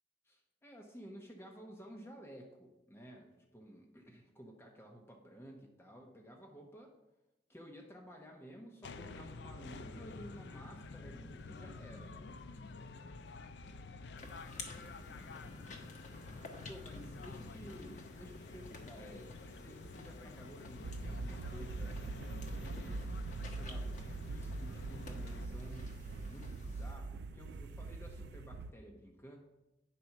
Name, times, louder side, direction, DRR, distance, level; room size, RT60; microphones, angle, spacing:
voice 1, 0.2-6.9 7.5-12.3 12.5-12.6 16.7-22.1 22.4-23.1 23.4-29.4, equal, 15° left, 0 dB, 0.9 m, -53 dB
sound 1, 8.8-25.5, left 3 dB, 70° left, 0.4 m, -49 dB
sound 2, 14.2-26.9, left 2 dB, 40° left, 1.1 m, -53 dB
sound 3, 20.8-28.7, right 3 dB, 65° right, 0.3 m, -43 dB
9.2 x 4.2 x 5.9 m, 0.95 s
head